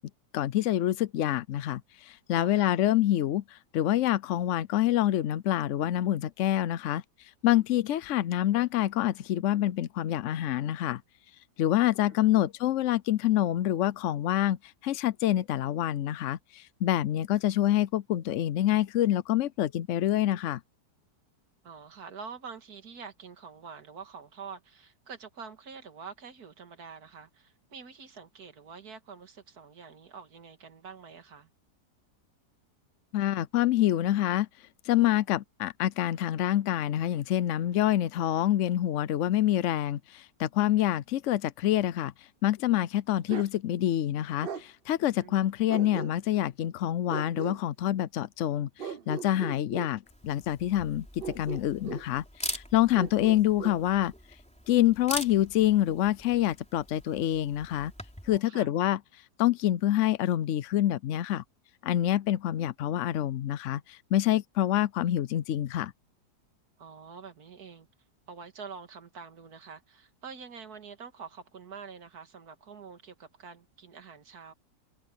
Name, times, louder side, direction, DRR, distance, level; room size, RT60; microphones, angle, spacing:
voice 1, 0.3-11.0 11.6-20.6 33.1-54.1 54.7-57.9 58.2-61.4 61.8-65.9, left 13 dB, 70° left, 0.7 m, -27 dB
voice 2, 2.4-2.7 12.1-12.5 21.6-31.5 45.1-45.4 58.3-58.7 66.8-67.9 68.3-74.5, right 6 dB, 65° right, 2.3 m, -46 dB
Bark, 43.3-43.6 44.4-44.7 45.7-46.4 47.1-47.6 48.8-49.9 51.2-52.1 52.9-53.8, right 7 dB, 45° right, 0.9 m, -38 dB
Camera, 50.1-58.4, equal, 5° left, 3.7 m, -42 dB
omnidirectional pair, 1.8 m